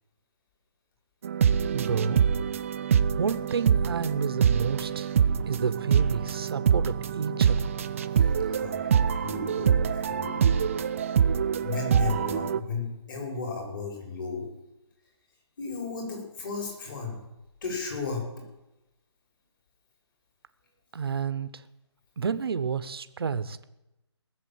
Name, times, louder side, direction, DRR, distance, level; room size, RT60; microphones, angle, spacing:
sound 1, 1.2-12.6, right 7 dB, 30° right, 0.5 m, -25 dB
voice 1, 1.7-2.2 3.1-5.1 5.5-7.7 20.9-21.5 22.2-23.6, right 6 dB, 55° right, 13 dB, 1.0 m, -30 dB
voice 2, 8.4-10.4 11.6-14.5 15.6-17.2 17.6-18.3, left 4 dB, 45° left, 1 dB, 5.7 m, -34 dB
19.0 x 7.4 x 8.7 m, 0.95 s
hypercardioid pair, 165°, 15 cm